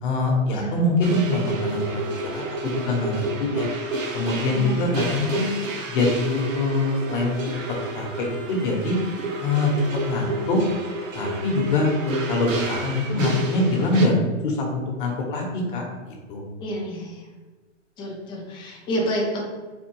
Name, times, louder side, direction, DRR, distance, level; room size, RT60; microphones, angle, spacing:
voice 1, 0.0-3.7 4.1-5.5 5.9-7.4 7.9-9.0 9.4-9.7 10.0-10.6 11.1-16.4, left 2 dB, 45° left, 0 dB, 1.2 m, -24 dB
sound 1, 1.0-14.1, right 2 dB, 90° right, 1.3 m, -30 dB
voice 2, 4.5-4.9 16.6-17.2 18.0-19.4, equal, 10° left, -3 dB, 0.8 m, -29 dB
4.2 x 2.3 x 4.6 m, 1.3 s
hypercardioid pair, 150°, 37 cm